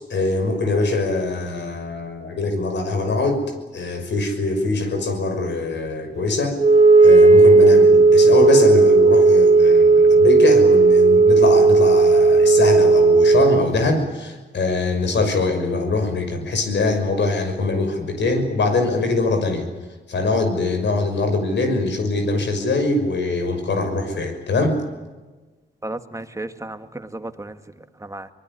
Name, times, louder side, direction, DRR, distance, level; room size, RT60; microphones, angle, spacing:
voice 1, 0.1-3.4 3.7-6.6 7.0-19.7 20.1-24.8, left 3 dB, 70° left, 6 dB, 6.1 m, -22 dB
Wind instrument woodwind instrument, 6.6-13.7, right 3 dB, 35° right, 1.9 m, -13 dB
voice 2, 25.8-27.6 28.0-28.3, right 2 dB, 15° right, 8 dB, 2.0 m, -33 dB
24.0 x 20.0 x 9.8 m, 1.3 s
cardioid pair, 60°, 20 cm